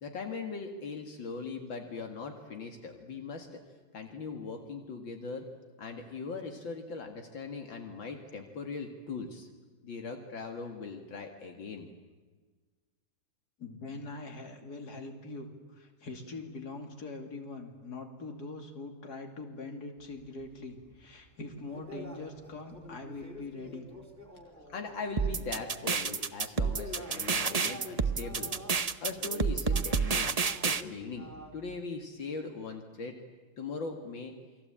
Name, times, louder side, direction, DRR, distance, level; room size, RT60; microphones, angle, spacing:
voice 1, 0.0-3.6 3.9-5.5 5.8-9.5 9.8-11.9 24.7-28.6 29.0-30.3 30.6-33.1 33.6-34.3, left 4 dB, 75° left, 4 dB, 2.7 m, -40 dB
voice 2, 13.6-23.9 24.5-24.7, left 3 dB, 55° left, 5 dB, 3.3 m, -43 dB
sound 1, 20.0-26.1 26.5-31.8, left 1 dB, 10° right, 4.0 m, -48 dB
sound 2, 25.2-30.8, right 5 dB, 55° right, 0.4 m, -29 dB
29.0 x 22.0 x 8.8 m, 1.4 s
omnidirectional pair, 2.1 m